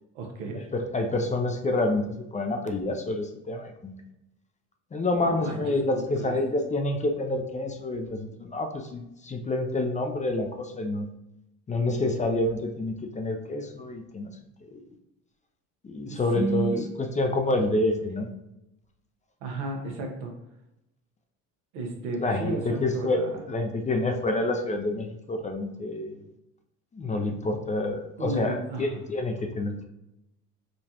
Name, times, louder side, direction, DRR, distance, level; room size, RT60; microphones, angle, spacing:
voice 1, 0.1-0.6 5.2-6.4 16.1-16.8 19.4-20.3 21.7-23.4 28.2-29.0, right 3 dB, 85° right, 1 dB, 1.1 m, -33 dB
voice 2, 0.7-3.9 4.9-11.1 11.7-14.3 14.7-14.8 15.8-18.3 22.2-23.2 23.5-26.2 26.9-29.8, left 2 dB, 20° left, 4 dB, 0.5 m, -28 dB
5.1 x 2.4 x 2.8 m, 0.87 s
supercardioid pair, 85°, 36 cm